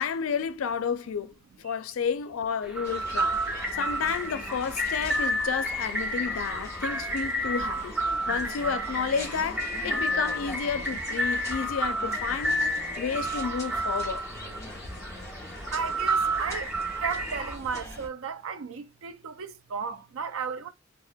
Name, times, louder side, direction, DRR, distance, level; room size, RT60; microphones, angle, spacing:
voice 1, 0.0-12.6 13.0-14.2, left 6 dB, 75° left, 0.4 m, -31 dB
sound 1, 2.6-17.6, right 1 dB, 5° right, 0.5 m, -30 dB
sound 2, 2.8-18.1, left 1 dB, 15° left, 1.0 m, -42 dB
voice 2, 15.7-16.7 17.0-20.7, right 6 dB, 75° right, 0.4 m, -34 dB
2.7 x 2.1 x 3.4 m
head